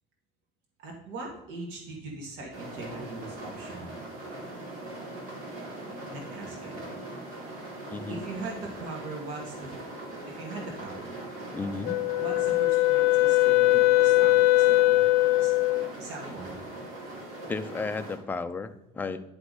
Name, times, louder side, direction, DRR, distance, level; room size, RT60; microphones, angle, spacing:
voice 1, 0.8-4.0 6.1-6.8 8.1-9.7 10.3-11.2 12.2-15.0 15.3-15.5 16.0-16.6, right 2 dB, 80° right, -1 dB, 1.8 m, -40 dB
sound 1, 2.5-18.2, right 2 dB, 60° right, 3.1 m, -41 dB
voice 2, 7.9-8.2 11.5-12.0 17.5-19.2, left 4 dB, 10° left, 8 dB, 0.4 m, -33 dB
Wind instrument woodwind instrument, 11.8-15.9, left 18 dB, 75° left, 0.5 m, -21 dB
10.0 x 4.1 x 4.8 m, 0.85 s
cardioid pair, 150°, 16 cm